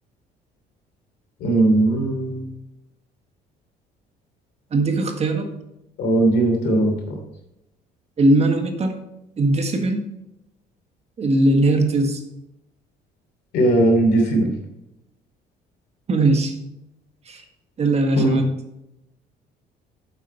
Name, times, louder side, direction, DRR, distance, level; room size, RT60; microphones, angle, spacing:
voice 1, 1.4-2.5 6.0-7.2 13.5-14.5 18.2-18.4, right 2 dB, 75° left, 2 dB, 3.1 m, -19 dB
voice 2, 4.7-5.5 8.2-8.9 9.4-10.0 11.2-12.2 16.1-16.6 17.3-17.4 17.8-18.5, right 2 dB, 40° right, 5 dB, 1.6 m, -19 dB
9.1 x 7.5 x 4.3 m, 0.86 s
cardioid pair, 110°, 17 cm